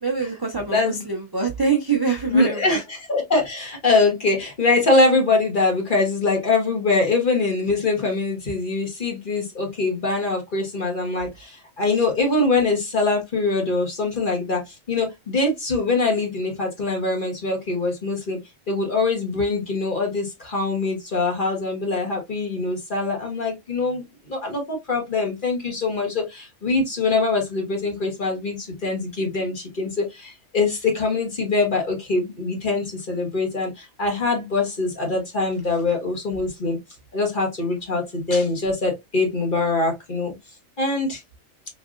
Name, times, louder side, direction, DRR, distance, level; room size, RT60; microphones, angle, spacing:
voice 1, 0.0-2.8, right 5 dB, 30° right, 0.5 m, -24 dB
voice 2, 0.7-1.0 2.2-18.4 18.7-36.8 37.1-40.3 40.8-41.2, left 3 dB, 40° left, 1.4 m, -23 dB
3.7 x 3.3 x 2.4 m
omnidirectional pair, 1.3 m